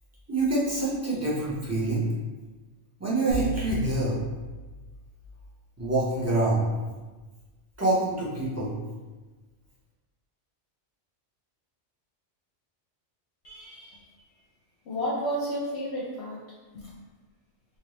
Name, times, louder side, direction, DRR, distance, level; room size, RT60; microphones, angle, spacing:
voice 1, 0.3-2.1 3.0-4.2 5.8-6.7 7.8-8.7, right 2 dB, 15° right, -8 dB, 0.6 m, -26 dB
sound 1, 3.3-5.4, right 3 dB, 80° right, 1.0 m, -35 dB
voice 2, 13.4-14.1 14.8-16.4 16.7-16.9, equal, 70° left, -5 dB, 0.8 m, -32 dB
2.8 x 2.6 x 3.1 m, 1.2 s
omnidirectional pair, 1.3 m